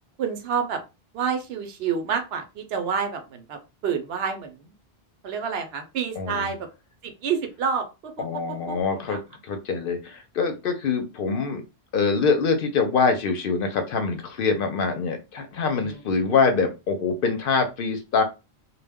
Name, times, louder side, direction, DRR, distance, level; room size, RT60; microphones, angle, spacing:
voice 1, 0.2-0.8 1.1-4.7 5.2-6.6 7.0-8.2 8.7-8.8 9.1-9.2 15.8-16.0, right 6 dB, 75° right, 6 dB, 0.8 m, -28 dB
voice 2, 6.2-6.5 8.2-11.6 11.9-18.2, left 5 dB, 65° left, 6 dB, 0.7 m, -24 dB
2.2 x 2.1 x 3.4 m, 0.27 s
omnidirectional pair, 1.1 m